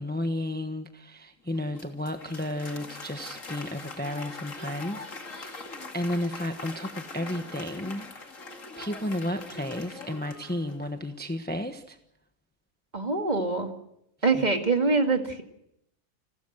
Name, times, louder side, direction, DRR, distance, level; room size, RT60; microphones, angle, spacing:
voice 1, 0.0-5.6 5.9-8.2 8.8-12.0, left 1 dB, 10° left, 7 dB, 1.1 m, -33 dB
Applause, 1.5-11.1, left 3 dB, 65° left, 2.6 m, -42 dB
voice 2, 12.9-13.7 14.2-15.4, right 3 dB, 30° right, 5 dB, 2.2 m, -24 dB
30.0 x 13.5 x 7.9 m, 0.81 s
omnidirectional pair, 1.4 m